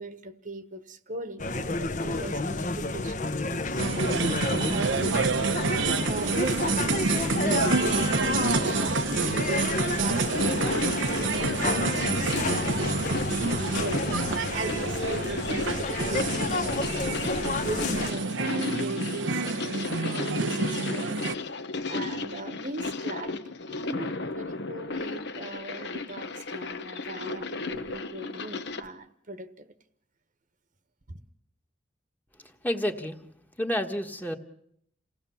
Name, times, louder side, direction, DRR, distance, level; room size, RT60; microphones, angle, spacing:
voice 1, 0.0-5.2 5.7-15.9 16.3-29.7 31.1-31.2, right 2 dB, 45° right, 1.2 m, -40 dB
sound 1, 1.4-18.1, left 2 dB, 40° left, 0.9 m, -30 dB
sound 2, 3.8-21.3, right 4 dB, 80° right, 1.0 m, -28 dB
sound 3, 10.2-28.9, left 3 dB, 60° left, 1.1 m, -34 dB
voice 2, 32.6-33.2 33.6-34.4, equal, 10° left, 1.4 m, -29 dB
28.5 x 17.0 x 7.1 m
head